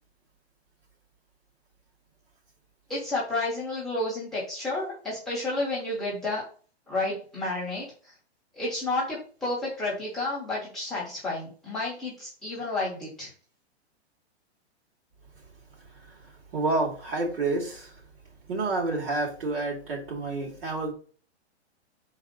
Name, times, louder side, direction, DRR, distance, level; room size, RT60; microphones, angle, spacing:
voice 1, 2.9-6.4 6.9-8.1 8.5-13.3, left 2 dB, ahead, -9 dB, 1.0 m, -31 dB
voice 2, 16.5-17.9 18.5-20.9, right 2 dB, 55° right, -1 dB, 2.6 m, -29 dB
4.9 x 4.0 x 5.2 m, 0.41 s
hypercardioid pair, 175°, 34 cm